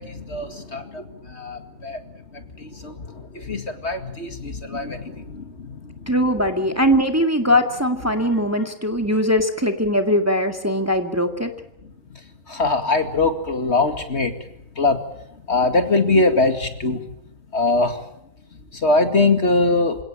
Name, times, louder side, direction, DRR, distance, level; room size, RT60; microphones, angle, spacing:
voice 1, 0.0-2.0 2.3-6.1 6.7-6.8 8.1-8.4 12.5-14.3 14.8-15.0 15.5-17.0 17.5-18.0 18.7-20.0, left 3 dB, 50° left, 7 dB, 2.4 m, -22 dB
voice 2, 6.1-11.5, equal, 10° right, 5 dB, 2.0 m, -20 dB
28.0 x 17.5 x 8.8 m, 0.80 s
omnidirectional pair, 1.5 m